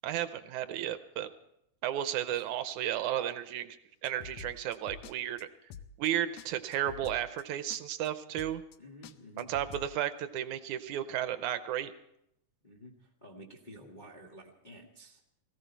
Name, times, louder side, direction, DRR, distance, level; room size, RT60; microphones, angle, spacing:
voice 1, 0.0-1.3 1.8-3.8 4.0-5.5 6.0-8.6 9.4-11.9, right 11 dB, 75° right, 11 dB, 2.0 m, -33 dB
sound 1, 4.0-5.1 5.4-5.5 5.7-6.1 6.4-6.5 6.7-7.4 7.7-7.8 8.1-8.2 8.4-8.8 9.0-9.9, left 8 dB, 75° left, 1.6 m, -47 dB
voice 2, 8.8-9.5 12.6-15.2, equal, 25° left, -1 dB, 1.1 m, -51 dB
18.5 x 16.5 x 4.5 m, 0.79 s
omnidirectional pair, 3.6 m